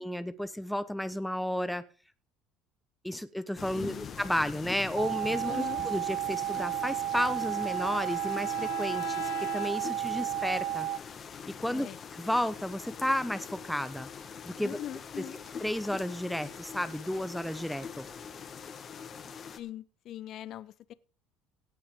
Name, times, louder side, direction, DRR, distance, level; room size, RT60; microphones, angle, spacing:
voice 1, 0.0-1.8 3.0-10.9 11.6-14.8 15.2-15.3 15.6-18.1, left 1 dB, 5° left, 13 dB, 0.8 m, -32 dB
sound 1, 3.6-19.6, left 6 dB, 35° left, 1.7 m, -44 dB
voice 2, 3.7-4.1 5.4-5.8 11.7-12.0 14.6-15.4 19.6-20.9, left 11 dB, 55° left, 18 dB, 0.8 m, -41 dB
sound 2, 4.9-11.0, right 14 dB, 80° right, 1.0 m, -33 dB
Bowed string instrument, 7.1-10.1, left 15 dB, 75° left, 1.1 m, -43 dB
17.5 x 5.9 x 5.1 m, 0.38 s
supercardioid pair, 105°, 0 cm